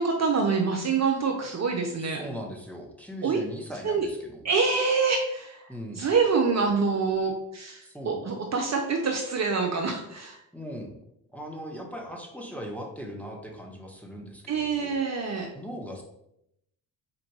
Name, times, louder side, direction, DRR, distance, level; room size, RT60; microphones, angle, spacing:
voice 1, 0.0-2.2 3.2-3.4 3.8-4.1 4.4-5.7 6.0-10.4 14.5-15.5, right 5 dB, 35° right, 2 dB, 0.7 m, -26 dB
voice 2, 2.0-4.4 5.7-6.0 7.8-8.2 10.5-10.9 11.3-16.0, equal, 5° left, 0 dB, 1.0 m, -39 dB
4.4 x 2.5 x 4.6 m, 0.79 s
hypercardioid pair, 50°, 49 cm